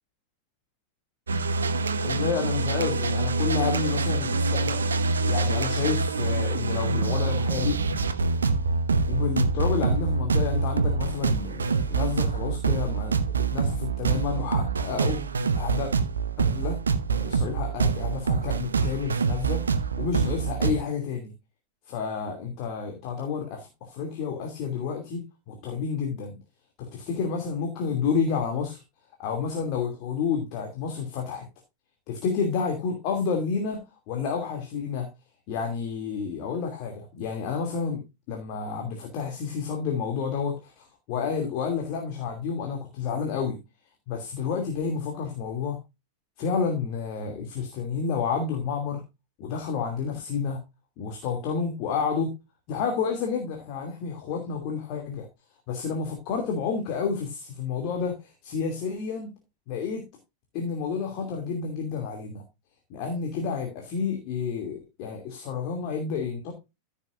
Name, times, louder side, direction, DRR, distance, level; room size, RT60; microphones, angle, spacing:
sound 1, 1.3-20.8, right 4 dB, 70° right, 0.9 m, -25 dB
voice 1, 2.0-5.0 5.2-7.8 9.1-13.1 13.5-15.2 15.5-15.9 16.4-16.8 17.1-19.6 20.0-21.3 21.9-26.4 26.8-28.8 29.2-31.4 32.1-33.8 34.1-35.1 35.5-38.0 38.3-43.6 44.1-45.8 46.4-49.0 49.4-50.6 51.0-52.3 52.7-55.3 55.7-59.3 59.7-60.0 60.5-62.4 62.9-66.5, left 6 dB, 45° left, 3 dB, 2.7 m, -30 dB
15.0 x 7.2 x 2.5 m, 0.24 s
figure-of-eight pair, 90°, 0 cm